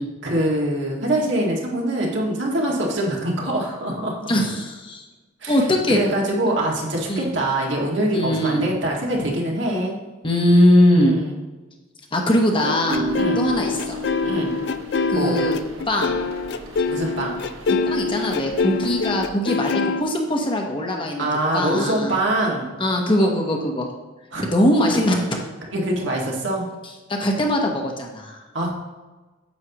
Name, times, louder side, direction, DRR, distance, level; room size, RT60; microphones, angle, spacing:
voice 1, 0.2-4.3 5.4-5.6 5.9-10.0 10.9-11.4 13.1-13.5 14.2-14.6 15.1-15.4 16.9-17.4 21.2-22.7 24.3-24.4 25.7-26.7 28.5-28.7, right 1 dB, 65° right, -2 dB, 1.9 m, -24 dB
voice 2, 4.3-5.0 5.5-6.0 7.1-7.3 8.1-8.7 10.2-11.2 12.1-13.1 13.4-14.0 15.1-15.6 15.9-16.2 17.9-21.3 21.5-22.2 22.8-23.9 24.4-25.4 27.1-28.4, left 1 dB, 25° left, 1 dB, 1.0 m, -21 dB
sound 1, 12.6-20.0, left 4 dB, 55° left, 0.4 m, -24 dB
sound 2, 12.9-19.3, equal, 90° right, 1.5 m, -33 dB
9.5 x 7.5 x 3.0 m, 1.2 s
head